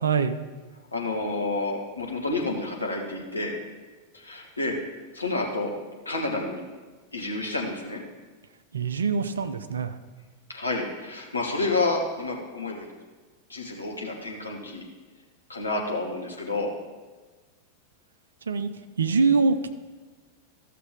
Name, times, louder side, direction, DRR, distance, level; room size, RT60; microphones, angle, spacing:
voice 1, 0.0-0.3 8.7-10.0 18.5-18.7 19.0-19.7, right 5 dB, 70° right, 10 dB, 0.6 m, -24 dB
voice 2, 0.9-3.6 4.1-4.7 5.1-5.7 6.0-6.6 7.1-8.0 10.5-12.9 13.5-14.8 15.5-16.7, left 2 dB, 80° left, -1 dB, 1.4 m, -29 dB
13.5 x 6.7 x 3.6 m, 1.3 s
figure-of-eight pair, 90°, 0 cm